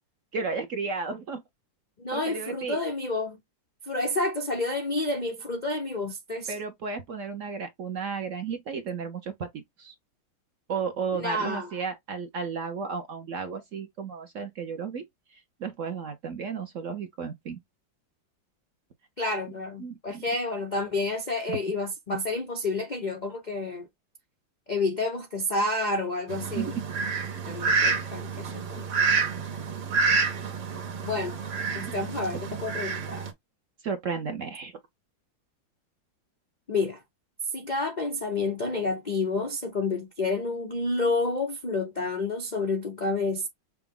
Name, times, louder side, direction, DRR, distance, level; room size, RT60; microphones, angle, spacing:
voice 1, 0.3-1.4 2.1-2.8 6.5-9.9 10.7-15.1 15.3-17.6 19.8-20.2 21.5-21.6 26.5-26.7 33.8-34.7, right 5 dB, 60° right, 0.9 m, -33 dB
voice 2, 2.0-3.4 3.9-6.5 11.1-11.7 19.2-23.9 24.7-26.7 27.5-28.9 31.0-31.4 31.7-33.3 36.7-37.0 37.5-43.5, left 2 dB, 65° left, 0.4 m, -29 dB
Fowl, 26.3-33.3, right 4 dB, 75° right, 1.8 m, -28 dB
5.9 x 2.1 x 3.7 m
omnidirectional pair, 2.0 m